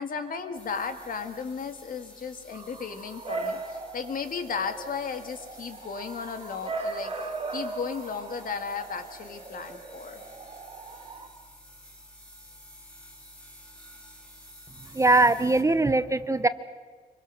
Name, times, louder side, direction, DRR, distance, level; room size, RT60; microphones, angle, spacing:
voice 1, 0.0-10.2, left 5 dB, 60° left, 7 dB, 2.0 m, -35 dB
sound 1, 0.5-15.6, equal, 5° left, 3.8 m, -51 dB
Bark / Motor vehicle (road) / Siren, 2.5-11.3, right 3 dB, 35° right, 2.9 m, -38 dB
voice 2, 14.9-16.5, right 2 dB, 20° right, 13 dB, 0.6 m, -21 dB
26.0 x 23.5 x 6.4 m, 1.5 s
wide cardioid pair, 125°, 16 cm